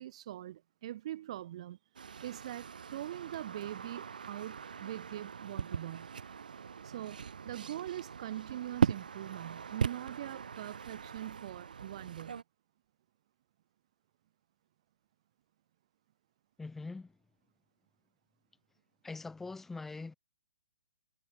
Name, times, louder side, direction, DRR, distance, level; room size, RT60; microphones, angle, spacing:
voice 1, 0.0-1.8 2.2-6.1 6.8-12.4, right 13 dB, 40° right, 1.2 m, -42 dB
sound 1, 2.0-12.4, right 6 dB, 60° right, 0.8 m, -39 dB
voice 2, 16.6-17.1 19.0-20.1, left 3 dB, 5° left, 2.0 m, -42 dB
figure-of-eight pair, 125°, 5 cm